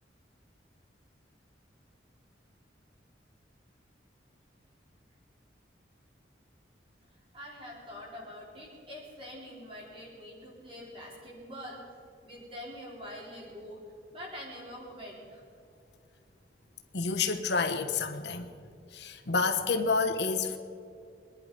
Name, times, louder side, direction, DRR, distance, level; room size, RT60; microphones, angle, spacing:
voice 1, 7.1-11.8 12.2-13.8 14.1-15.4, equal, 30° right, -4 dB, 5.0 m, -45 dB
voice 2, 16.9-18.5 18.9-20.6, left 4 dB, 70° left, 7 dB, 1.1 m, -29 dB
24.5 x 10.5 x 5.2 m, 2.5 s
head